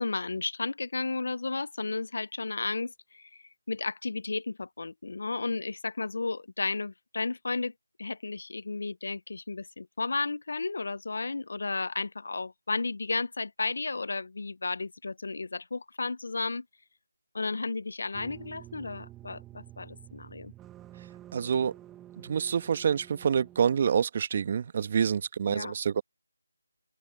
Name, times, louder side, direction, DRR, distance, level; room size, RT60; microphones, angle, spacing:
voice 1, 0.0-3.3 3.7-7.7 8.0-16.6 17.3-20.5 25.5-25.7, left 3 dB, 60° left, 0.8 m, -33 dB
sound 1, 18.1-23.8, right 13 dB, 10° right, 1.5 m, -49 dB
voice 2, 21.3-21.7 22.2-26.0, right 7 dB, 30° right, 1.3 m, -27 dB
open air
figure-of-eight pair, 165°, 0 cm